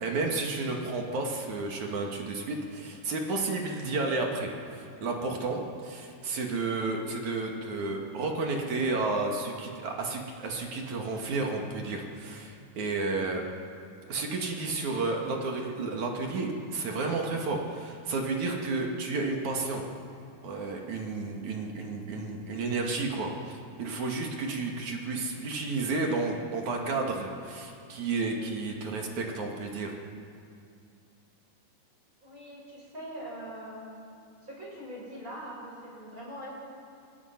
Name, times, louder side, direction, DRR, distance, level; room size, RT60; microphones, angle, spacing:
voice 1, 0.0-13.5 14.1-19.8 20.4-29.9, right 3 dB, 50° right, 1 dB, 2.9 m, -32 dB
voice 2, 32.2-33.9 34.4-36.5, equal, 20° right, -5 dB, 7.0 m, -42 dB
26.0 x 22.5 x 6.0 m, 2.4 s
omnidirectional pair, 5.2 m